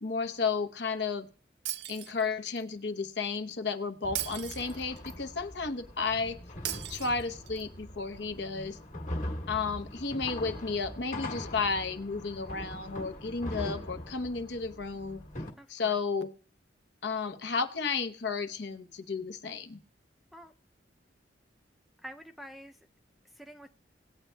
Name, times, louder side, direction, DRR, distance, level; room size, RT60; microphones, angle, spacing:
voice 1, 0.0-1.3 1.9-6.4 6.9-8.8 9.5-15.3 15.7-16.3 17.0-19.8, left 4 dB, 70° left, 0.8 m, -33 dB
Shatter, 1.7-2.6 4.2-5.2 6.7-7.6, right 12 dB, 70° right, 0.4 m, -38 dB
sound 1, 4.0-15.5, left 1 dB, 45° left, 1.4 m, -41 dB
voice 2, 15.6-16.0 20.3-20.5 22.0-22.8 23.4-23.7, equal, ahead, 0.4 m, -47 dB
18.5 x 9.0 x 2.2 m
head